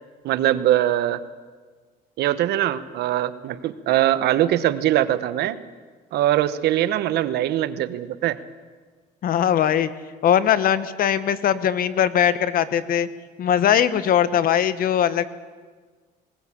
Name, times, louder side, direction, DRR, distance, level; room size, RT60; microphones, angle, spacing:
voice 1, 0.2-1.2 2.2-5.6 6.1-8.4, right 13 dB, 75° right, 13 dB, 1.1 m, -22 dB
voice 2, 9.2-9.9 10.2-13.1 13.4-15.2, left 9 dB, 60° left, 14 dB, 1.2 m, -20 dB
20.0 x 19.0 x 8.7 m, 1.5 s
cardioid pair, 110°, 17 cm